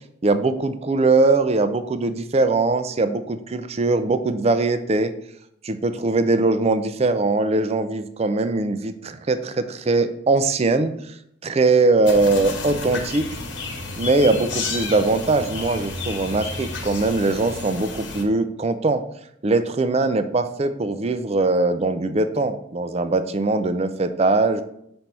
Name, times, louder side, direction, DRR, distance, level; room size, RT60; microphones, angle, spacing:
voice 1, 0.2-5.1 5.6-11.1 11.4-13.3 14.0-19.0 19.4-24.6, right 3 dB, 30° right, 10 dB, 0.4 m, -21 dB
sound 1, 12.0-18.2, left 3 dB, 65° left, 1.2 m, -31 dB
6.0 x 4.4 x 5.3 m, 0.73 s
head